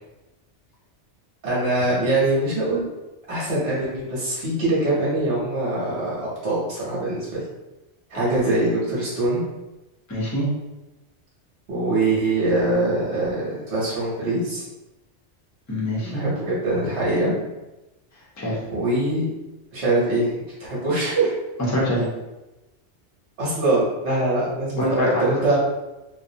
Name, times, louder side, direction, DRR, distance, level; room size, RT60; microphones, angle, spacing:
voice 1, 1.4-2.8 3.3-7.4 8.1-9.4 11.7-14.6 16.0-17.3 18.7-19.3 19.7-20.3 20.7-21.3 23.4-25.6, right 2 dB, 70° right, -6 dB, 1.0 m, -23 dB
voice 2, 8.1-8.5 10.1-10.5 15.7-16.2 18.4-18.6 21.7-22.1 24.7-25.2, left 1 dB, 20° left, -5 dB, 0.5 m, -25 dB
2.4 x 2.1 x 2.6 m, 1.0 s
omnidirectional pair, 1.2 m